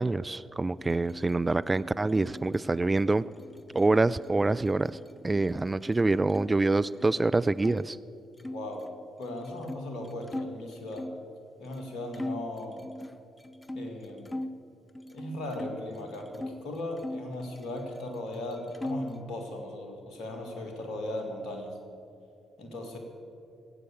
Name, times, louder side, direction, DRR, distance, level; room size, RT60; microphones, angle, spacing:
voice 1, 0.0-3.3 3.7-5.0 5.2-8.0, right 2 dB, 25° right, 16 dB, 0.3 m, -26 dB
sound 1, 0.8-6.5 6.8-7.8 8.4-11.3 11.7-11.9 12.1-14.6 14.9-16.6 17.0-18.1 18.3-19.2, left 1 dB, 20° left, 0.7 m, -41 dB
voice 2, 8.5-8.9 9.2-11.1 11.6-12.9 13.7-14.3 15.1-21.8 22.6-23.0, left 1 dB, 65° left, 3 dB, 2.1 m, -37 dB
18.0 x 8.3 x 8.4 m, 2.6 s
figure-of-eight pair, 40°, 0 cm